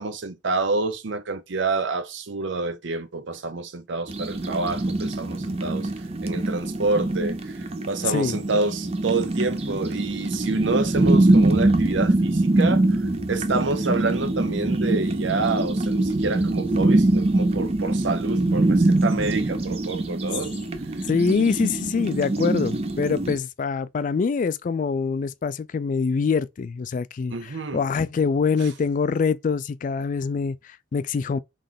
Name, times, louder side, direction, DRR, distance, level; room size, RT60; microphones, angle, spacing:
voice 1, 0.0-5.9 6.2-20.5 27.3-27.8, right 3 dB, 75° right, 0.7 m, -28 dB
sound 1, 4.1-23.4, right 2 dB, 35° right, 0.5 m, -23 dB
voice 2, 8.0-8.4 21.1-31.4, left 5 dB, 45° left, 0.3 m, -24 dB
3.9 x 3.1 x 3.6 m
head